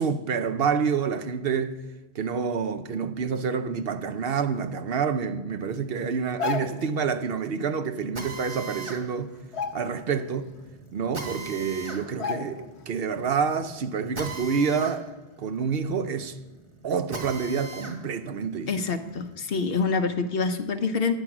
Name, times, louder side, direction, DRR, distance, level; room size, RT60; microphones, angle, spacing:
voice 1, 0.0-1.7 2.1-9.3 9.7-10.5 10.9-15.1 15.4-16.3 16.8-18.7, right 6 dB, 65° right, 0.9 m, -28 dB
sound 1, 6.2-7.0 8.4-8.5 8.8-9.1 9.4-10.3 10.7-10.8 11.5-11.6 12.2-12.8 13.2-13.3, left 6 dB, 80° left, 1.1 m, -33 dB
Drill, 8.2-18.0 18.4-20.0, right 3 dB, 30° right, 1.3 m, -41 dB
voice 2, 18.7-21.2, left 4 dB, 65° left, 1.0 m, -26 dB
9.8 x 9.2 x 5.9 m
omnidirectional pair, 1.1 m